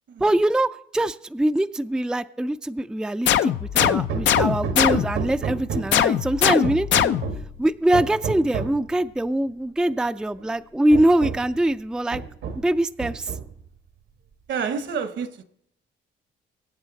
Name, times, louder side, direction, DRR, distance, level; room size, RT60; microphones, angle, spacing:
voice 1, 0.2-7.2 7.6-12.2 12.6-13.4, right 1 dB, 5° right, 0.4 m, -23 dB
sound 1, 3.3-5.3 5.9-7.5, left 10 dB, 70° left, 0.6 m, -21 dB
Hammer, 3.8-6.1 6.6-7.5 7.9-8.8 9.9-10.0 10.4-10.5 10.9-11.6 12.1-12.7 13.0-13.7, right 6 dB, 85° right, 1.7 m, -31 dB
voice 2, 6.4-6.8 14.5-15.4, right 6 dB, 65° right, 1.2 m, -30 dB
23.5 x 8.1 x 4.0 m
cardioid pair, 90°, 20 cm